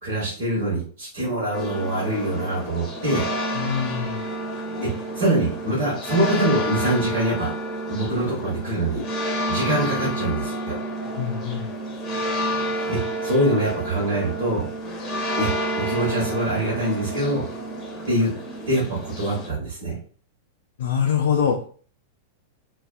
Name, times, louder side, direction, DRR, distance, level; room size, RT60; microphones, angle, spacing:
voice 1, 0.0-3.3 4.8-7.5 7.9-9.0 9.5-10.8 12.9-14.7 15.4-17.4 18.1-18.3 18.7-20.0, right 1 dB, 60° right, -5 dB, 1.1 m, -24 dB
sound 1, 1.5-19.5, right 1 dB, 30° left, 0.7 m, -30 dB
voice 2, 3.6-4.2 11.2-11.7 20.8-21.7, left 7 dB, 60° left, 2 dB, 0.3 m, -24 dB
2.3 x 2.3 x 2.3 m, 0.43 s
figure-of-eight pair, 95°, 0 cm